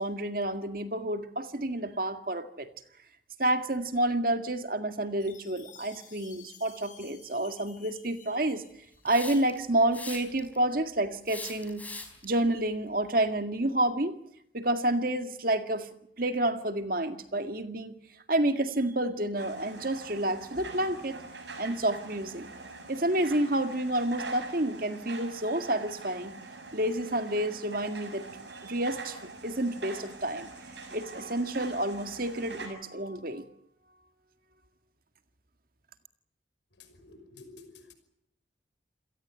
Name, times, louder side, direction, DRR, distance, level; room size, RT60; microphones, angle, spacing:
voice 1, 0.0-2.7 3.4-8.6 9.0-11.9 12.2-14.2 14.5-15.9 16.2-17.9 18.3-21.2 21.6-22.5 22.9-26.4 26.7-30.5 30.9-33.5, right 1 dB, 50° right, 8 dB, 2.0 m, -29 dB
Chime, 5.2-9.3, left 7 dB, 45° left, 6.7 m, -54 dB
Hiss, 9.1-9.6 9.9-10.6 11.3-12.2, left 3 dB, 10° left, 4.4 m, -40 dB
sound 1, 19.3-32.7, right 3 dB, 75° right, 7.1 m, -44 dB
voice 2, 36.8-37.9, left 3 dB, 75° left, 9 dB, 5.6 m, -51 dB
28.0 x 18.0 x 8.4 m, 0.74 s
head